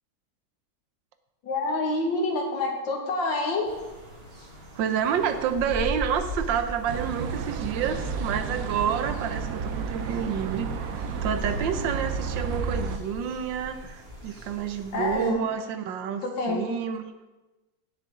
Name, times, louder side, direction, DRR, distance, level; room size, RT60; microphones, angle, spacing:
voice 1, 1.4-3.7 14.9-15.5 16.2-16.7, left 2 dB, 75° left, 1 dB, 2.4 m, -27 dB
sound 1, 3.6-15.3, equal, 30° right, 2.3 m, -40 dB
voice 2, 4.8-10.7 11.2-17.1, right 8 dB, 75° right, 9 dB, 1.5 m, -29 dB
sound 2, 6.9-13.0, right 5 dB, 60° right, 1.0 m, -32 dB
16.5 x 6.9 x 3.8 m, 1.1 s
omnidirectional pair, 2.0 m